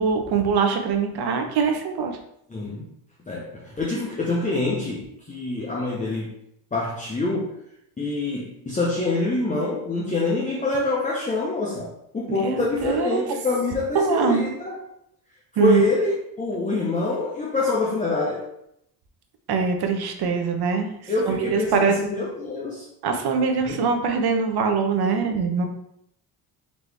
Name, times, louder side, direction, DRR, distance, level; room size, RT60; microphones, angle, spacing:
voice 1, 0.0-2.1 12.3-13.3 13.9-14.5 15.6-15.8 19.5-20.9 21.2-22.0 23.0-25.7, right 5 dB, 55° right, 5 dB, 0.9 m, -23 dB
voice 2, 2.5-2.9 3.3-6.3 6.7-7.6 8.0-14.8 15.5-18.5 21.1-22.9 23.7-23.8, left 3 dB, 15° left, -4 dB, 0.7 m, -25 dB
4.2 x 3.0 x 3.4 m, 0.75 s
cardioid pair, 90°, 45 cm